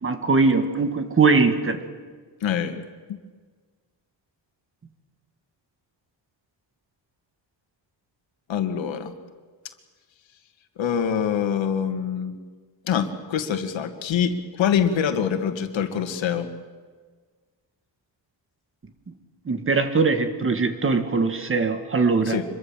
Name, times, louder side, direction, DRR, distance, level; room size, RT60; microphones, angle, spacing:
voice 1, 0.0-1.8 19.4-22.4, right 4 dB, 30° right, 8 dB, 1.7 m, -21 dB
voice 2, 2.4-3.2 8.5-9.1 10.8-12.4 12.8-16.5 22.3-22.4, left 8 dB, 85° left, 8 dB, 2.2 m, -25 dB
25.5 x 22.5 x 7.5 m, 1.5 s
wide cardioid pair, 170°, 44 cm